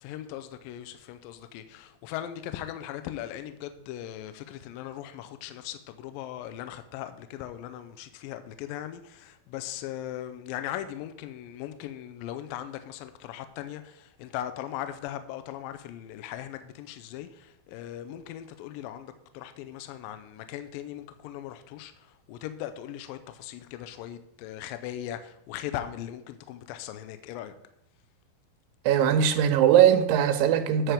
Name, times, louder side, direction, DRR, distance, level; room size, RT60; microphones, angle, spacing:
voice 1, 0.0-27.5, left 11 dB, 80° left, 2.2 m, -39 dB
voice 2, 28.9-30.9, right 9 dB, 80° right, 2.4 m, -20 dB
9.1 x 4.5 x 5.0 m
omnidirectional pair, 4.2 m